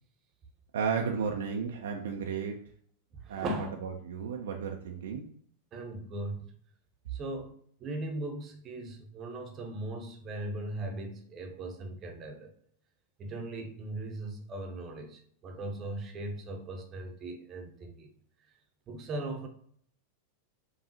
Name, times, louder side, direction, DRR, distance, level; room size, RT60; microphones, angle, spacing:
voice 1, 0.7-2.6 3.3-3.5 3.8-5.3, right 6 dB, 60° right, 2 dB, 0.4 m, -33 dB
voice 2, 3.2-3.8 5.7-6.4 7.1-7.5 7.8-12.5 13.2-18.1 18.9-19.5, right 2 dB, 30° right, 4 dB, 0.8 m, -38 dB
5.4 x 2.3 x 2.8 m, 0.63 s
figure-of-eight pair, 90°, 0 cm